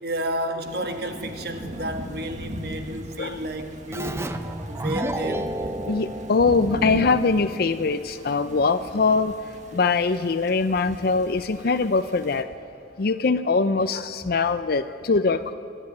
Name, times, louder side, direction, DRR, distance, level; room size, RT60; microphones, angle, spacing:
voice 1, 0.0-4.3 4.7-5.5 10.9-11.0 14.2-14.3, right 1 dB, 60° right, 5 dB, 1.6 m, -31 dB
Thunder / Rain, 0.6-12.4, right 1 dB, 40° right, 1.5 m, -38 dB
Keyboard (musical), 3.9-7.3, right 1 dB, 15° right, 0.7 m, -32 dB
voice 2, 5.9-9.3 9.7-12.5 13.0-15.5, left 4 dB, 55° left, 9 dB, 0.5 m, -22 dB
24.0 x 12.0 x 9.5 m, 2.6 s
head